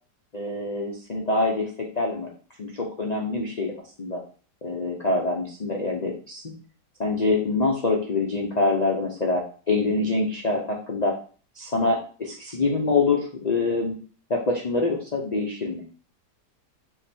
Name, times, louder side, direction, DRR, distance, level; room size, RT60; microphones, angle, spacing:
voice 1, 0.3-1.7 2.0-2.3 2.6-3.7 4.0-4.2 4.6-6.4 7.0-11.1 11.6-14.0 14.3-15.8, left 3 dB, 60° left, -1 dB, 0.4 m, -25 dB
4.1 x 2.9 x 4.2 m, 0.41 s
omnidirectional pair, 1.8 m